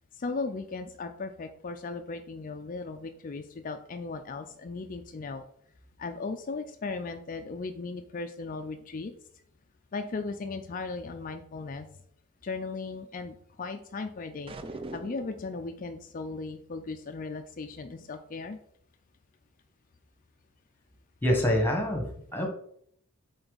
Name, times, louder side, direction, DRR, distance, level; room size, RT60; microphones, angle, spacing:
voice 1, 0.1-5.4 6.0-9.1 9.9-11.9 12.4-14.6 14.9-18.6, left 3 dB, 35° left, 7 dB, 0.4 m, -37 dB
sound 1, 14.5-15.5, right 2 dB, 25° right, 0.4 m, -40 dB
voice 2, 21.2-22.5, left 1 dB, 10° left, 2 dB, 1.3 m, -26 dB
7.9 x 3.9 x 4.0 m, 0.66 s
head